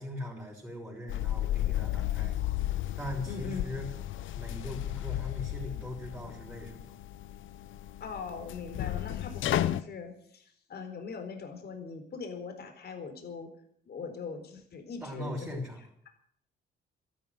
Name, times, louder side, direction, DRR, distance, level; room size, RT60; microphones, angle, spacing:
voice 1, 0.0-2.4 3.0-3.9 4.4-6.8 15.0-15.8, left 1 dB, 5° right, -4 dB, 6.2 m, -40 dB
sound 1, 1.1-9.8, left 13 dB, 75° left, 0.8 m, -33 dB
voice 2, 3.3-3.6 8.0-13.5 13.9-15.6, left 5 dB, 55° left, 6 dB, 4.2 m, -41 dB
13.0 x 12.0 x 9.2 m, 0.66 s
cardioid pair, 90°, 20 cm